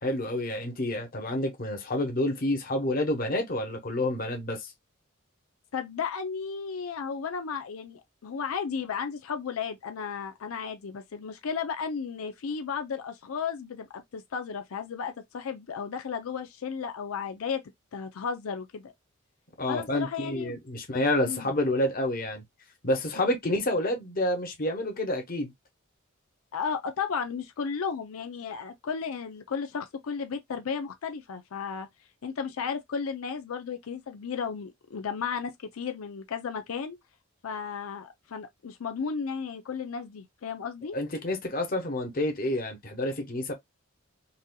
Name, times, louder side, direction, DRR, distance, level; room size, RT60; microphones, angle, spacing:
voice 1, 0.0-4.7 19.6-22.4 22.8-25.5 40.9-43.5, left 1 dB, 45° left, 1.0 m, -29 dB
voice 2, 5.7-17.6 17.9-18.9 19.7-20.6 21.2-21.5 26.5-31.9 32.2-37.0 37.4-41.0, left 6 dB, 85° left, 0.5 m, -34 dB
4.1 x 2.7 x 2.2 m
head